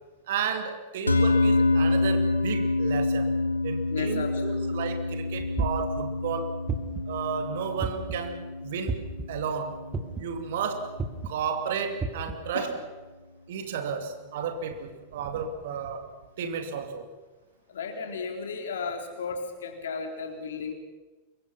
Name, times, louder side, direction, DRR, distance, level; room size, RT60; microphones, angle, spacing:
voice 1, 0.3-6.6 7.1-9.8 10.2-10.9 11.2-12.8 13.5-17.1, right 6 dB, 55° right, 6 dB, 2.5 m, -33 dB
sound 1, 1.1-11.5, left 2 dB, 80° left, 1.9 m, -28 dB
voice 2, 3.9-4.6 12.5-12.7 17.7-20.7, left 5 dB, 65° left, 4 dB, 3.6 m, -34 dB
sound 2, 5.6-6.0 6.7-7.1 7.8-8.3 8.9-9.2 9.9-10.3 11.0-11.3 12.0-12.3, right 4 dB, 15° right, 2.1 m, -30 dB
25.5 x 23.0 x 5.8 m, 1.2 s
figure-of-eight pair, 90°, 0 cm